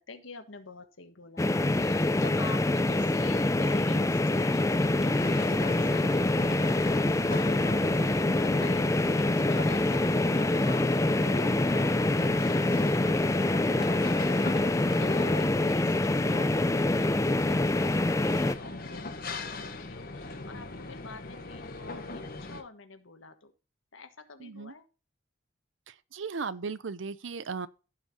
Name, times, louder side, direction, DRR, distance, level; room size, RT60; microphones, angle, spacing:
voice 1, 0.1-5.2 5.5-23.5 23.9-24.8, left 3 dB, 80° left, 1.5 m, -46 dB
sound 1, 1.4-18.6, left 2 dB, 15° left, 0.4 m, -25 dB
sound 2, 4.7-22.6, left 3 dB, 50° left, 1.3 m, -40 dB
sound 3, 9.5-13.1 13.4-14.7 14.9-15.5 15.8-16.0 16.3-16.5 16.8-16.9 17.2-17.3, equal, ahead, 1.4 m, -51 dB
voice 2, 24.4-24.7 26.1-27.7, right 5 dB, 70° right, 0.6 m, -36 dB
15.5 x 5.8 x 2.7 m
head